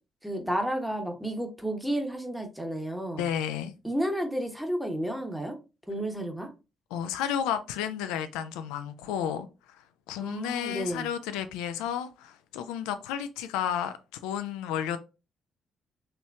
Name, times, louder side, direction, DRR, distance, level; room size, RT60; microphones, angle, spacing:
voice 1, 0.2-3.3 3.8-5.6 5.9-6.5 10.2-11.1, right 1 dB, ahead, 1.0 m, -31 dB
voice 2, 3.2-3.7 6.9-15.0, left 9 dB, 70° left, 0.3 m, -32 dB
4.4 x 3.0 x 2.3 m
figure-of-eight pair, 40°, 0 cm